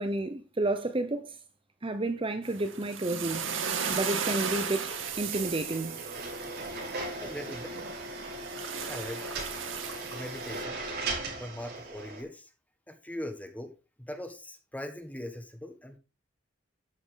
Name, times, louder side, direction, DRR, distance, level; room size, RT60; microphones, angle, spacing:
voice 1, 0.0-1.4 1.8-3.4 3.9-5.9, right 2 dB, 30° right, 0.9 m, -31 dB
sound 1, 2.4-10.6, right 7 dB, 85° right, 1.9 m, -36 dB
sound 2, 3.3-12.2, right 2 dB, 55° right, 7.1 m, -39 dB
voice 2, 7.2-7.7 8.9-9.3 10.1-10.9 11.4-12.5 12.9-13.7 14.0-16.0, left 1 dB, 10° left, 1.6 m, -40 dB
13.0 x 7.8 x 3.9 m
head